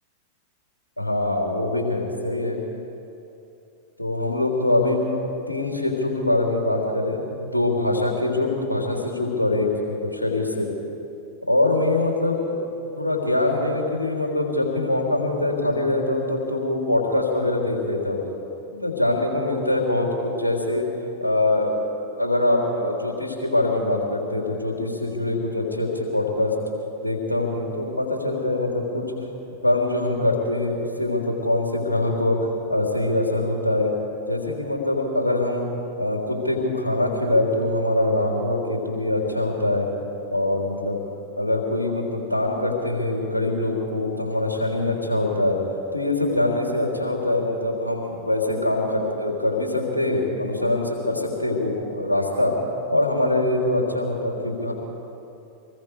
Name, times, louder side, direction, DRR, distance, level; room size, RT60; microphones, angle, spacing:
voice 1, 1.0-2.6 4.0-5.0 5.5-10.7 11.5-12.5 13.0-18.2 18.7-20.9 21.2-21.7 22.2-26.6 27.0-29.1 29.6-34.0 34.3-35.7 36.0-39.9 40.3-41.0 41.4-45.6 45.9-52.6 52.9-54.7, left 2 dB, 85° left, 0 dB, 3.6 m, -23 dB
26.5 x 20.5 x 5.0 m, 2.8 s
figure-of-eight pair, 90°, 0 cm